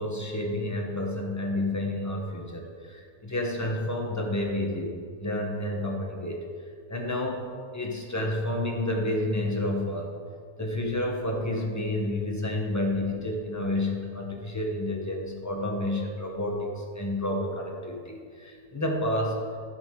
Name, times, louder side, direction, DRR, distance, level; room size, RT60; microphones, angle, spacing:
voice 1, 0.0-6.4 6.9-7.4 7.7-10.1 10.6-19.4, left 1 dB, 10° left, 0 dB, 1.0 m, -30 dB
12.0 x 5.9 x 4.7 m, 2.1 s
omnidirectional pair, 1.8 m